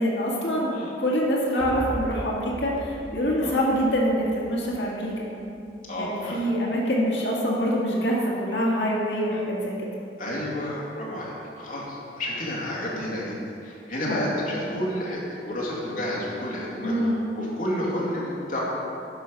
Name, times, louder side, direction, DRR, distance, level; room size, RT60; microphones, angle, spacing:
voice 1, 0.0-0.7 1.0-5.3 6.0-9.9 14.0-14.3 16.8-17.2, equal, 65° left, -3 dB, 1.9 m, -25 dB
sound 1, 1.6-5.5, equal, 30° left, 1.1 m, -38 dB
voice 2, 5.9-6.4 10.2-18.6, left 1 dB, 45° left, -5 dB, 2.3 m, -31 dB
11.0 x 5.6 x 5.2 m, 2.6 s
head